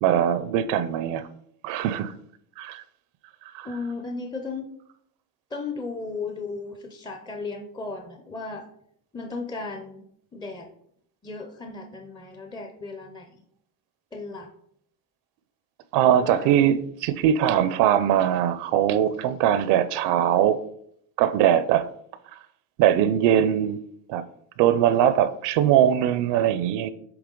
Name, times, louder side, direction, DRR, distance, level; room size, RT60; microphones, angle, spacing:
voice 1, 0.0-1.2 1.6-2.1 2.6-2.8 3.5-3.7 15.9-20.6 21.2-21.9 22.8-23.8 24.1-24.2 24.6-26.9, right 10 dB, 70° right, 0.6 m, -21 dB
voice 2, 3.6-4.6 5.5-8.7 9.1-10.7 11.2-13.4 14.1-14.5 16.0-16.5, left 3 dB, 10° left, 0.4 m, -35 dB
7.9 x 3.3 x 3.7 m
cardioid pair, 135°, 44 cm